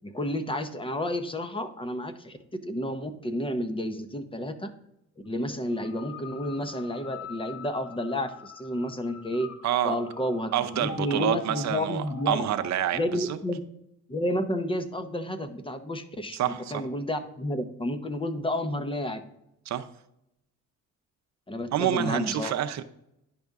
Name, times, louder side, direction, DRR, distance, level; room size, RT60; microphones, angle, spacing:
voice 1, 0.0-4.7 5.2-9.5 9.8-12.5 12.9-13.6 14.1-16.4 16.7-19.2 21.5-22.5, left 1 dB, 15° left, 9 dB, 0.7 m, -31 dB
sound 1, 5.7-13.2, left 3 dB, 70° left, 1.2 m, -44 dB
voice 2, 9.6-10.0 10.5-13.4 16.3-16.8 19.7-19.9 21.7-22.8, right 10 dB, 65° right, 9 dB, 0.6 m, -28 dB
10.5 x 5.3 x 3.5 m, 0.80 s
cardioid pair, 90°, 30 cm